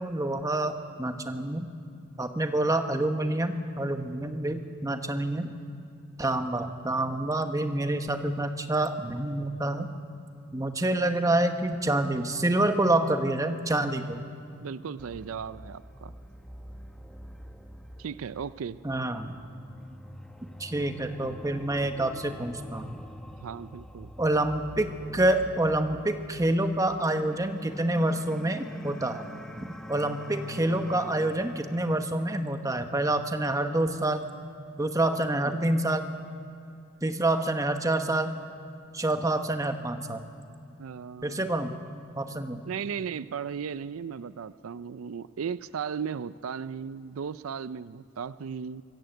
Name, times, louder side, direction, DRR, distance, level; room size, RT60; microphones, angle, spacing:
voice 1, 0.0-1.7 2.2-5.5 6.2-9.9 10.5-14.2 18.8-19.3 20.6-23.0 24.2-24.9 25.1-29.3 29.6-34.2 34.8-36.0 37.0-38.3 38.9-40.2 41.2-41.7 42.2-42.6, right 1 dB, 15° right, 7 dB, 1.1 m, -27 dB
voice 2, 14.6-16.1 18.0-18.8 23.4-24.1 40.8-41.5 42.7-48.8, right 6 dB, 80° right, 15 dB, 0.4 m, -36 dB
sound 1, 15.0-32.0, equal, 5° left, 0.9 m, -46 dB
25.0 x 14.5 x 7.9 m, 2.4 s
head